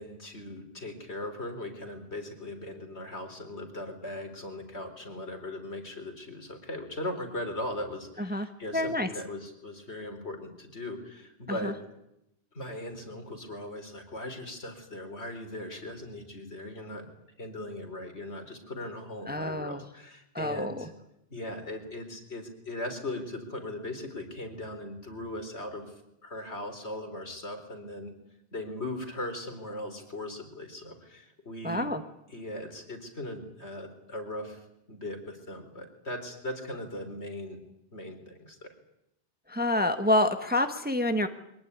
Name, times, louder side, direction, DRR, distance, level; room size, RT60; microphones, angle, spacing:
voice 1, 0.0-11.8 12.5-17.1 17.4-20.9 21.3-25.9 26.2-28.1 28.5-31.9 32.3-37.6 37.9-38.7, left 1 dB, 70° left, 5 dB, 4.2 m, -39 dB
voice 2, 8.2-9.1 11.5-11.7 19.3-19.8 20.3-20.9 31.6-32.0 39.5-41.3, left 1 dB, 10° right, 7 dB, 1.3 m, -28 dB
23.5 x 19.0 x 9.5 m, 0.82 s
omnidirectional pair, 1.2 m